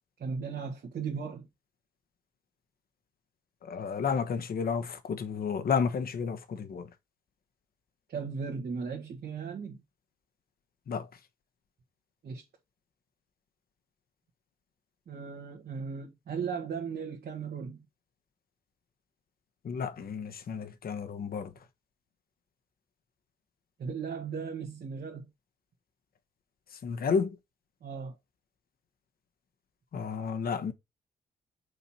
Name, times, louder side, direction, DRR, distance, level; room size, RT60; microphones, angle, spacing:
voice 1, 0.2-1.5 8.1-9.8 12.2-12.4 15.1-17.9 23.8-25.3 27.8-28.1, right 6 dB, 60° right, 1.7 m, -37 dB
voice 2, 3.6-6.9 10.9-11.1 19.6-21.5 26.8-27.4 29.9-30.7, left 6 dB, 60° left, 1.2 m, -31 dB
6.6 x 4.2 x 4.2 m
hypercardioid pair, 40°, 18 cm